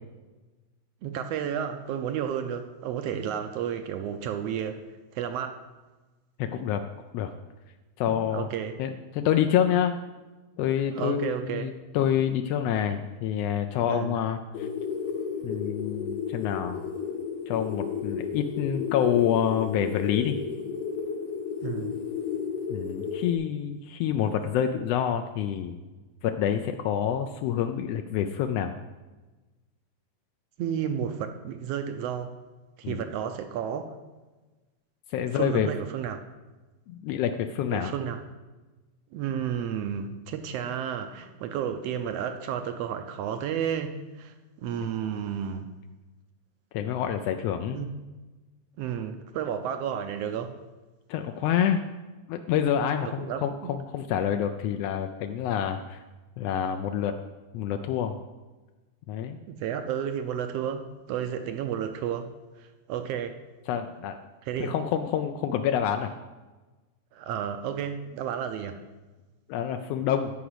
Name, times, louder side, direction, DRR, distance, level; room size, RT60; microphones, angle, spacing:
voice 1, 1.0-4.8 5.1-5.6 8.1-8.8 10.9-11.7 13.9-14.2 21.6-22.0 30.6-32.3 32.8-33.9 35.3-36.2 37.7-38.2 39.1-45.7 47.7-47.9 48.8-50.6 53.0-53.7 59.5-63.4 64.4-64.7 67.1-68.8, right 8 dB, 75° right, 8 dB, 1.5 m, -32 dB
voice 2, 6.4-6.8 7.1-7.3 8.0-8.5 8.8-10.0 10.6-14.7 15.4-16.8 17.5-20.4 22.7-25.8 26.2-28.7 32.8-33.0 35.1-35.7 36.9-37.9 46.7-47.8 51.1-51.8 52.3-56.0 56.4-57.2 57.5-58.2 59.1-59.4 63.7-64.2 64.6-66.1 69.5-70.3, left 9 dB, 85° left, 6 dB, 1.4 m, -27 dB
sound 1, 14.5-23.3, left 6 dB, 65° left, 1.7 m, -33 dB
11.5 x 5.0 x 7.9 m, 1.2 s
omnidirectional pair, 3.4 m